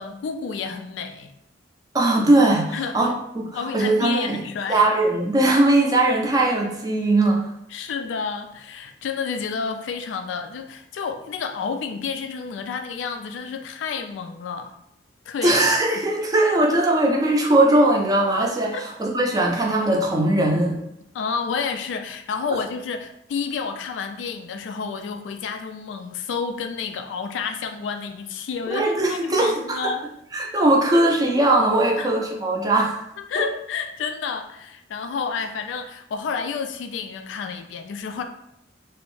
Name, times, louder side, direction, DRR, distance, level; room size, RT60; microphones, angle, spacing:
voice 1, 0.0-1.3 2.7-3.0 3.5-4.9 7.7-14.7 15.3-15.6 18.7-18.8 21.1-30.0 32.0-32.1 33.2-38.2, left 5 dB, 75° left, 6 dB, 0.3 m, -30 dB
voice 2, 1.9-4.4 4.7-7.5 15.4-20.8 28.7-29.5 29.8-29.9 30.3-33.0, right 2 dB, 20° right, -1 dB, 0.4 m, -20 dB
2.6 x 2.0 x 3.0 m, 0.78 s
head